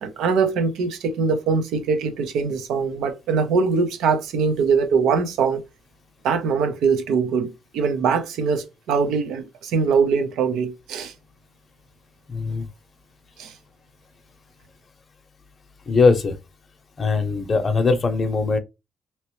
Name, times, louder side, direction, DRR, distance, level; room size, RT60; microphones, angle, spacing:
voice 1, 0.0-5.6 6.2-11.1 13.4-13.5, right 5 dB, 85° right, 0.8 m, -22 dB
voice 2, 12.3-12.7 15.9-16.4 17.0-18.6, left 4 dB, 40° left, 0.7 m, -20 dB
3.0 x 2.8 x 3.1 m
cardioid pair, 90°, 0 cm